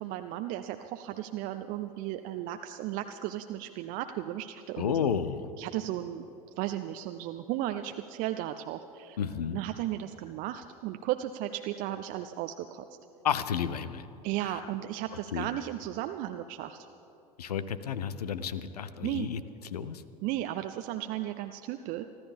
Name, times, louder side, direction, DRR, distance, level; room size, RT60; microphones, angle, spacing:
voice 1, 0.0-5.0 5.6-6.3 6.6-9.2 9.5-12.8 14.2-16.9 19.0-19.3 20.2-22.0, right 13 dB, 45° right, 8 dB, 0.5 m, -35 dB
voice 2, 4.8-5.5 9.2-9.6 13.2-14.1 15.3-15.5 17.4-19.4 19.7-20.0, left 8 dB, 70° left, 14 dB, 0.7 m, -31 dB
24.5 x 14.0 x 3.5 m, 3.0 s
figure-of-eight pair, 75°, 20 cm